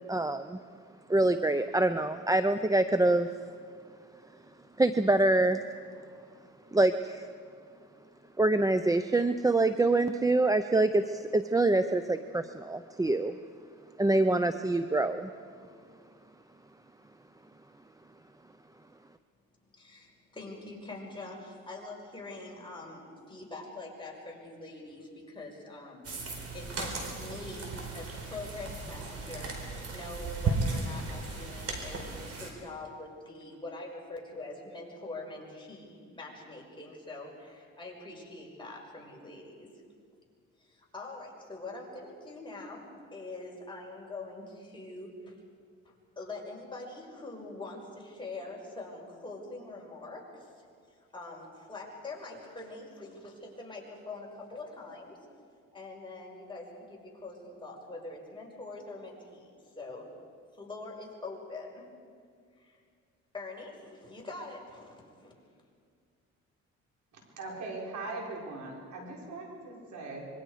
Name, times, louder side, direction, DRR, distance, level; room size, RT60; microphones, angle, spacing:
voice 1, 0.1-0.6 1.1-3.3 4.8-5.6 6.7-7.3 8.4-13.4 14.0-15.3, right 2 dB, 10° right, 10 dB, 0.6 m, -25 dB
voice 2, 19.7-39.7 40.6-42.8 43.1-45.4 45.8-50.4 51.1-55.2 55.7-59.5 59.8-60.1 60.6-61.8 62.6-62.8 63.3-65.3, left 2 dB, 15° left, -2 dB, 5.6 m, -44 dB
Dog Chewing Snack, 26.0-32.5, right 3 dB, 50° right, 4.5 m, -35 dB
voice 3, 67.1-70.3, right 3 dB, 70° right, -1 dB, 5.1 m, -40 dB
25.5 x 22.5 x 5.0 m, 2.2 s
cardioid pair, 90°, 30 cm